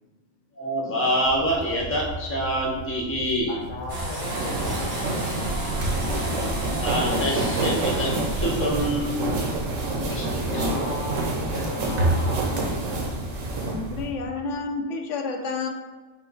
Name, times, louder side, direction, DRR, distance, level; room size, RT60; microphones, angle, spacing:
voice 1, 0.6-3.6 6.8-9.2 10.1-10.6, equal, 15° left, -3 dB, 0.6 m, -26 dB
sound 1, 1.2-14.2, right 1 dB, 50° right, 0.9 m, -34 dB
voice 2, 3.5-5.9 10.0-13.0, left 1 dB, 55° left, -3 dB, 0.6 m, -37 dB
sound 2, 3.9-12.2, right 1 dB, 35° right, 1.6 m, -33 dB
sound 3, 4.2-14.1, right 2 dB, 85° right, 1.2 m, -28 dB
voice 3, 13.6-15.7, left 4 dB, 75° left, 3 dB, 0.9 m, -30 dB
5.5 x 2.0 x 4.0 m, 1.3 s
omnidirectional pair, 1.3 m